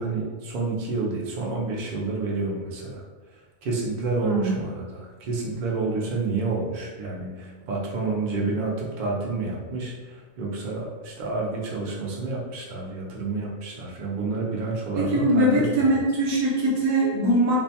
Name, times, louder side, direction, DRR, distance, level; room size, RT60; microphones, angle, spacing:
voice 1, 0.0-3.0 3.6-15.9, right 3 dB, 80° right, -3 dB, 0.4 m, -29 dB
voice 2, 4.2-4.6 14.9-17.6, right 1 dB, 60° right, -4 dB, 0.9 m, -22 dB
2.5 x 2.1 x 2.7 m, 1.3 s
omnidirectional pair, 1.4 m